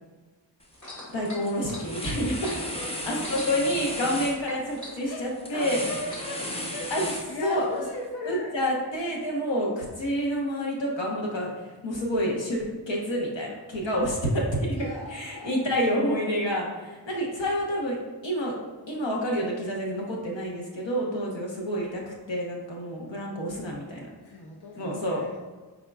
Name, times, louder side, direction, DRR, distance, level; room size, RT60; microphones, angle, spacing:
sound 1, 0.6-0.9 1.2-7.8, left 1 dB, 15° left, 0.5 m, -36 dB
sound 2, 0.7-4.2 4.4-6.5 7.3-7.4, left 1 dB, 40° left, 1.5 m, -42 dB
voice 1, 1.1-5.8 6.9-7.1 7.4-7.7 8.2-18.0 18.2-18.6 18.9-24.1 24.8-25.2, equal, 85° left, -2 dB, 1.0 m, -28 dB
voice 2, 2.7-3.3 4.9-5.2 5.5-6.9 7.3-8.5 14.7-15.7 24.2-25.4, left 2 dB, 60° left, -1 dB, 0.6 m, -38 dB
5.1 x 3.6 x 2.3 m, 1.3 s
wide cardioid pair, 60°, 43 cm